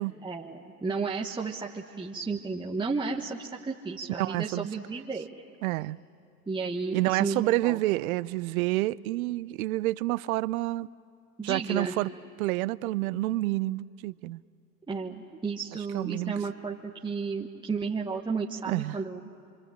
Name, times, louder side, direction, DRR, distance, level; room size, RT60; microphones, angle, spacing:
voice 1, 0.2-5.3 6.5-7.8 11.4-11.9 14.9-19.2, right 4 dB, 10° right, 1.4 m, -33 dB
voice 2, 4.2-4.7 5.6-6.0 6.9-10.9 11.4-12.1 12.4-14.4 15.9-16.3 18.7-19.0, right 18 dB, 60° right, 0.7 m, -28 dB
26.0 x 25.5 x 8.9 m
hypercardioid pair, 100°, 47 cm